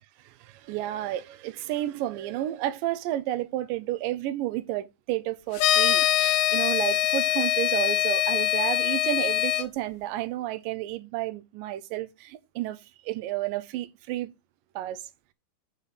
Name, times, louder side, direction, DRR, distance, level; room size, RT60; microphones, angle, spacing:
voice 1, 0.3-12.8 13.0-14.3 14.8-15.0, right 14 dB, 80° right, 2.1 m, -31 dB
sound 1, 5.6-9.6, left 13 dB, 90° left, 1.8 m, -23 dB
5.6 x 5.0 x 6.6 m
omnidirectional pair, 4.4 m